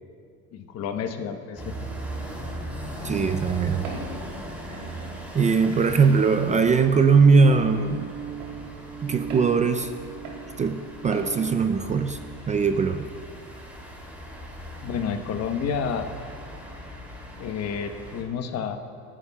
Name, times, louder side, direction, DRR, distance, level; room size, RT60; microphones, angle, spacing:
voice 1, 0.5-1.9 14.8-16.1 17.4-18.8, left 6 dB, 50° left, 7 dB, 1.0 m, -30 dB
sound 1, 1.6-18.2, equal, 5° right, 2.7 m, -39 dB
voice 2, 3.0-3.9 4.7-4.9 5.3-8.1 9.0-9.9 10.6-12.2 12.5-13.1, right 5 dB, 25° right, 8 dB, 0.4 m, -21 dB
Walk footsteps, 3.8-4.1 4.7-4.9 5.6-5.8 6.6-6.7 7.5-7.7 8.4-8.6 9.3-9.5 10.2-10.4 11.1-11.3, right 4 dB, 85° right, 3.0 m, -38 dB
sound 2, 7.2-12.4, right 7 dB, 40° right, 1.3 m, -38 dB
23.5 x 11.0 x 2.3 m, 2.4 s
cardioid pair, 120°, 32 cm